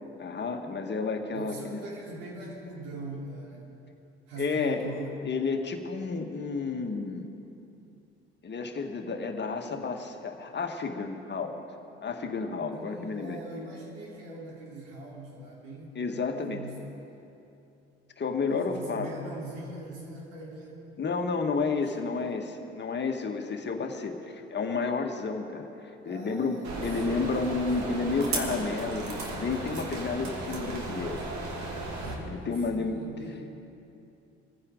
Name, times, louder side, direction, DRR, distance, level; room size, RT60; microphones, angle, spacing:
voice 1, 0.2-1.8 4.4-4.9 5.2-7.3 8.4-11.7 12.0-13.4 16.0-16.6 18.2-19.1 21.0-31.3 32.3-33.0, left 4 dB, 35° left, 4 dB, 1.8 m, -31 dB
voice 2, 1.3-3.8 4.3-5.2 12.7-16.8 18.5-20.8 21.6-22.4 26.0-28.1 32.1-33.6, right 2 dB, 75° right, -3 dB, 3.8 m, -42 dB
sound 1, 26.6-32.2, right 3 dB, 55° right, 2.6 m, -35 dB
23.0 x 15.0 x 3.9 m, 2.8 s
hypercardioid pair, 60°, 32 cm